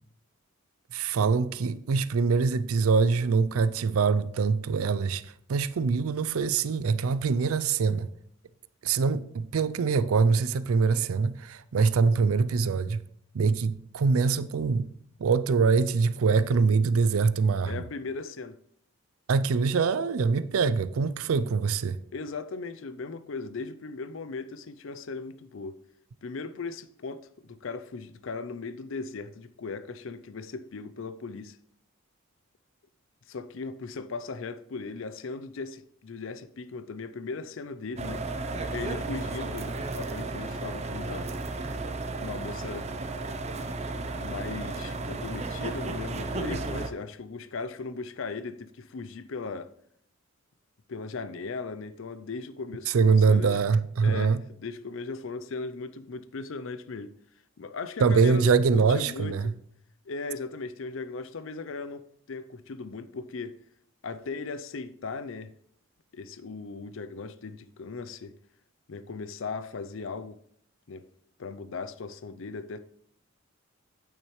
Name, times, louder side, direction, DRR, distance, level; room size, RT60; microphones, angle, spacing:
voice 1, 0.9-8.1 8.8-13.1 13.3-14.9 15.2-17.8 19.3-22.0 52.9-54.4 58.0-59.5, right 5 dB, 80° right, 0.4 m, -24 dB
voice 2, 17.7-18.6 22.1-25.8 26.2-31.6 33.3-38.2 38.7-41.3 42.2-42.9 44.2-49.7 50.9-53.6 54.0-57.1 57.6-59.6 60.0-63.6 64.0-65.5 66.1-68.3 68.9-70.4 70.9-71.1 71.4-72.8, left 4 dB, 65° left, 0.5 m, -38 dB
sound 1, 38.0-46.9, right 2 dB, 30° right, 0.6 m, -34 dB
9.1 x 8.7 x 3.2 m
head